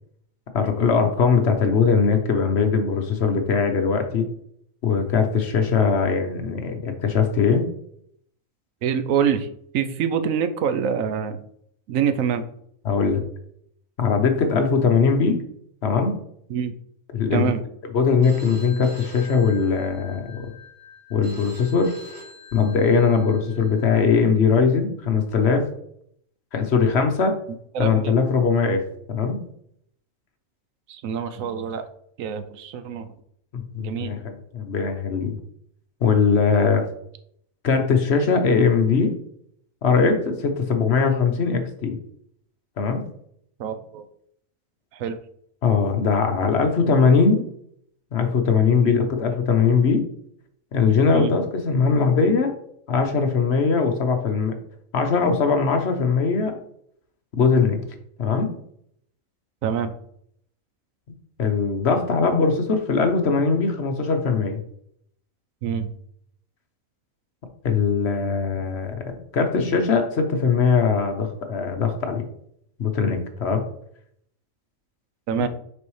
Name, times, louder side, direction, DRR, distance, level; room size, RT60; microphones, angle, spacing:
voice 1, 0.5-4.3 4.8-7.6 12.8-13.2 14.0-15.4 15.8-16.2 17.1-17.5 17.9-20.4 21.1-21.9 22.5-25.7 26.5-27.4 27.8-28.8 29.1-29.4 33.5-35.3 36.0-36.8 37.6-39.1 39.8-42.0 42.8-43.0 45.6-47.4 48.1-50.0 50.7-52.5 52.9-54.6 54.9-56.5 57.3-57.8 58.2-58.5 61.4-64.6 67.6-68.9 69.3-72.2 72.8-73.6, left 5 dB, 55° left, 6 dB, 1.1 m, -20 dB
voice 2, 8.8-9.5 9.7-11.4 11.9-12.5 16.5-16.7 17.3-17.6 27.7-28.1 30.9-31.9 32.2-33.1 33.8-34.1 43.6-44.0 44.9-45.2 48.8-49.0 51.1-51.3 59.6-59.9 65.6-65.9 75.3-75.5, right 7 dB, 85° right, 10 dB, 1.0 m, -25 dB
Telephone, 18.2-24.2, left 3 dB, 60° right, 1.8 m, -44 dB
6.5 x 5.3 x 3.2 m, 0.69 s
omnidirectional pair, 1.4 m